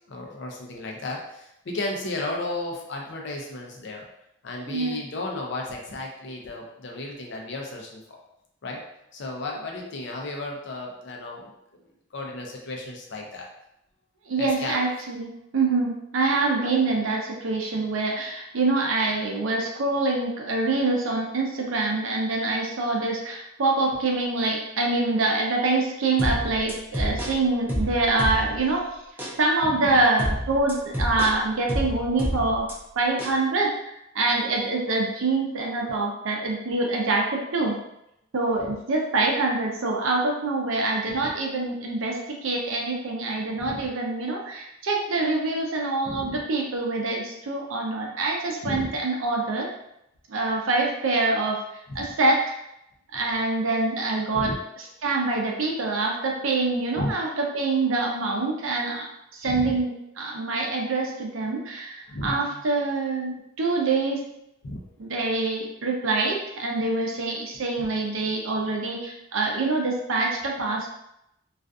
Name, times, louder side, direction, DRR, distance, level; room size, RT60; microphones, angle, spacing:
voice 1, 0.1-4.1 4.4-8.2 8.6-8.8 9.1-11.5 12.1-13.5 14.4-14.8 16.6-16.7 29.6-29.9 41.2-41.3 43.6-43.9 46.1-46.4 48.6-48.9 52.0-52.1 54.3-54.6 56.9-57.2 59.4-59.7 62.1-62.6 64.6-64.9, left 2 dB, 60° left, 0 dB, 0.5 m, -34 dB
voice 2, 14.3-28.9 29.4-32.7 33.0-37.8 38.3-49.7 50.3-51.6 51.9-52.4 53.1-54.5 55.0-59.1 59.3-59.9 60.2-64.2 65.0-70.9, right 3 dB, 75° right, 0 dB, 0.5 m, -25 dB
sound 1, 26.2-28.7 29.2-29.4 30.2-32.7 33.2-33.4, equal, 10° right, 0.4 m, -29 dB
2.4 x 2.4 x 2.3 m, 0.82 s
head